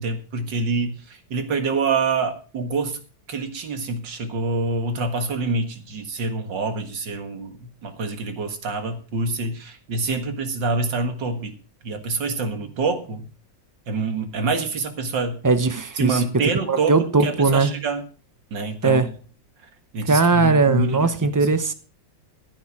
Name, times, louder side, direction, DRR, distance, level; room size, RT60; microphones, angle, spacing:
voice 1, 0.0-3.0 3.3-11.5 11.8-13.3 13.9-15.4 16.0-18.0 18.5-19.1 19.9-21.5, right 3 dB, 80° right, 2.4 m, -26 dB
voice 2, 15.4-16.2 16.7-17.7 18.8-19.1 20.1-21.7, right 3 dB, 20° right, 0.4 m, -19 dB
14.5 x 9.3 x 4.9 m
omnidirectional pair, 1.9 m